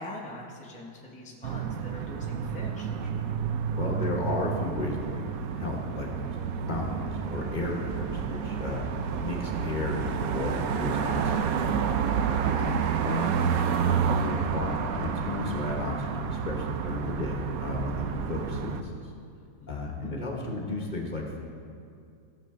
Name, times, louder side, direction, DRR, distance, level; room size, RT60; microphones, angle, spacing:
voice 1, 0.0-2.9 12.4-12.8 19.6-19.7 20.0-20.1, left 1 dB, 10° left, -3 dB, 0.4 m, -42 dB
sound 1, 1.4-18.8, right 7 dB, 70° right, 0.8 m, -30 dB
voice 2, 3.0-3.3 3.7-11.7 13.0-18.9 19.7-21.4, left 2 dB, 30° left, -1 dB, 1.2 m, -34 dB
14.5 x 6.7 x 3.7 m, 2.4 s
omnidirectional pair, 1.9 m